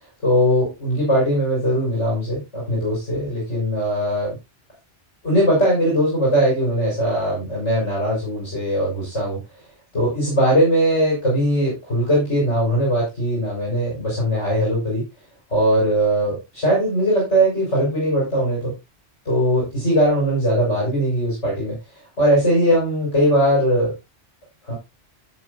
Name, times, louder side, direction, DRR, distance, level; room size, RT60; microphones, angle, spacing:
voice 1, 0.2-4.4 5.2-9.4 9.9-15.0 15.5-18.7 19.3-21.8 22.2-23.9 24.6-24.7, equal, 75° left, -4 dB, 5.3 m, -20 dB
12.5 x 7.9 x 2.5 m, 0.22 s
omnidirectional pair, 1.2 m